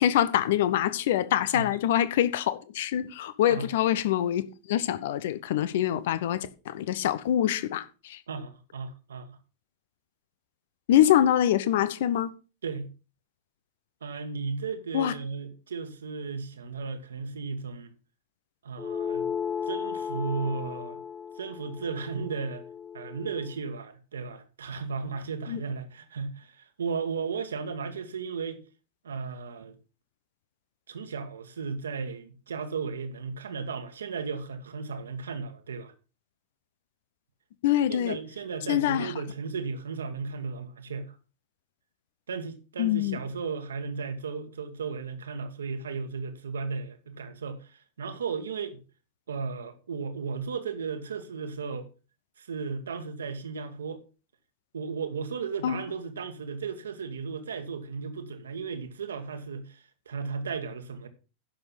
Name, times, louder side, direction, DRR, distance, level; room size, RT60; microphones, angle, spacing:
voice 1, 0.0-4.4 4.7-8.2 10.9-12.3 14.9-15.1 25.5-25.6 37.6-38.2 38.7-39.1 42.8-43.2 55.6-55.8, left 11 dB, 55° left, 0.9 m, -25 dB
voice 2, 8.3-9.4 12.6-12.9 14.0-17.9 18.6-19.3 19.6-21.0 21.4-22.6 22.9-28.6 29.0-29.8 30.9-35.9 37.9-41.1 42.3-48.8 49.3-51.9 52.4-54.0 54.7-61.1, right 5 dB, 70° right, 1.5 m, -35 dB
sound 1, 18.8-23.6, left 7 dB, 15° left, 0.6 m, -35 dB
10.5 x 6.7 x 5.7 m
figure-of-eight pair, 90°, 0 cm